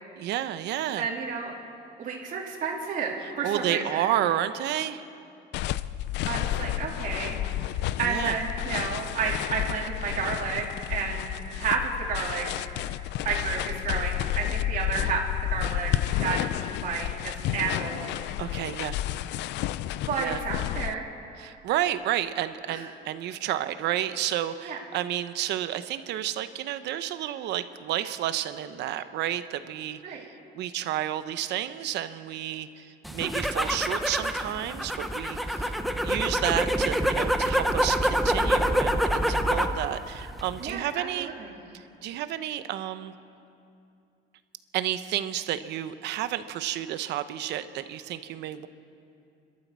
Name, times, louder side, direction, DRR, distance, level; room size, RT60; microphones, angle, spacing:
voice 1, 0.2-1.1 3.2-5.0 8.0-8.4 18.4-19.0 20.2-20.4 21.4-35.7 36.0-41.3 42.0-43.1 44.7-48.7, right 12 dB, 70° right, 11 dB, 0.9 m, -31 dB
voice 2, 1.0-1.5 2.0-4.1 6.2-7.4 8.0-11.3 11.6-12.5 13.2-15.2 15.5-15.9 16.2-18.1 20.1-21.0 22.7-22.9 24.6-24.8 30.0-30.2 40.6-41.6, right 5 dB, 45° right, -2 dB, 3.0 m, -31 dB
sound 1, 5.5-20.9, left 13 dB, 75° left, 0.5 m, -31 dB
sound 2, 33.0-39.8 40.1-40.7, equal, ahead, 0.9 m, -26 dB
28.0 x 12.5 x 7.5 m, 2.6 s
cardioid pair, 160°, 18 cm